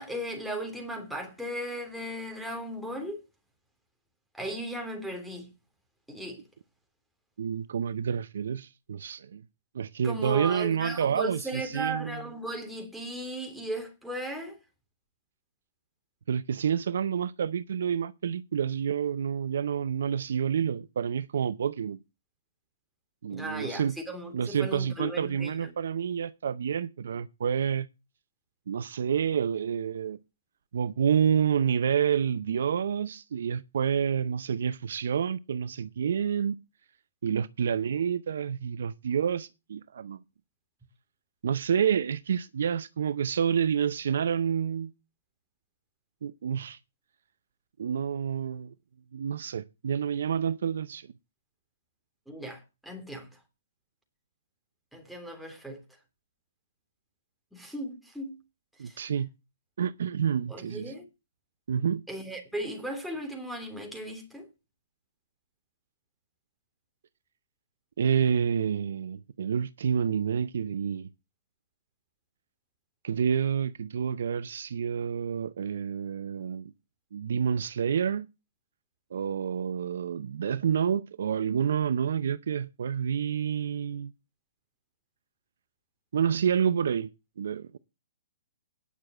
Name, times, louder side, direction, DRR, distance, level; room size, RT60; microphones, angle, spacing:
voice 1, 0.0-3.2 4.3-5.5 6.1-6.4 10.0-14.6 23.3-25.7 52.3-53.3 54.9-55.8 57.5-58.4 58.8-59.1 60.5-61.1 62.1-64.5, right 1 dB, ahead, 3.4 m, -36 dB
voice 2, 7.4-9.4 9.7-12.2 16.3-22.0 23.2-24.0 24.3-27.9 28.7-30.2 30.7-36.6 37.2-40.2 41.4-44.9 46.2-46.8 47.8-48.7 49.1-51.1 58.8-59.3 59.8-60.9 61.7-62.0 68.0-71.1 73.0-76.7 77.1-78.3 79.1-84.1 86.1-87.1 87.4-87.8, right 7 dB, 65° right, 0.6 m, -28 dB
10.0 x 6.5 x 7.4 m
hypercardioid pair, 125°, 0 cm